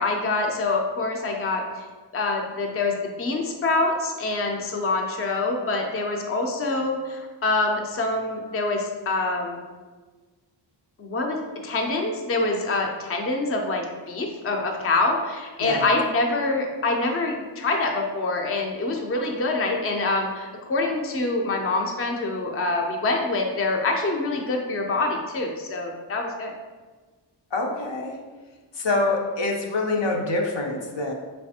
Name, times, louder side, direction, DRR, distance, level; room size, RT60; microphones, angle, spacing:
voice 1, 0.0-1.9 2.1-9.6 11.0-26.5, left 2 dB, 30° left, 2 dB, 0.5 m, -25 dB
voice 2, 27.5-28.2 28.7-31.1, left 2 dB, 70° left, 0 dB, 0.7 m, -25 dB
3.9 x 3.2 x 2.8 m, 1.3 s
wide cardioid pair, 75°, 45 cm